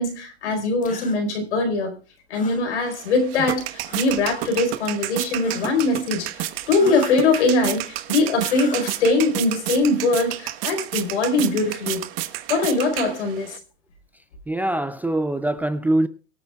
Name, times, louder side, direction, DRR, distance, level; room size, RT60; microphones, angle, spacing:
voice 1, 0.0-1.9 2.3-12.0 12.5-13.6, left 3 dB, 85° left, 4.5 m, -22 dB
sound 1, 0.8-1.2 2.3-2.7 3.8-4.3 5.4-5.9 6.7-7.3 8.4-9.1, left 6 dB, 25° left, 1.9 m, -37 dB
sound 2, 2.9-13.6, right 15 dB, 60° right, 1.3 m, -31 dB
voice 2, 14.5-16.1, right 1 dB, 5° right, 0.4 m, -23 dB
23.5 x 8.8 x 2.4 m
supercardioid pair, 135°, 33 cm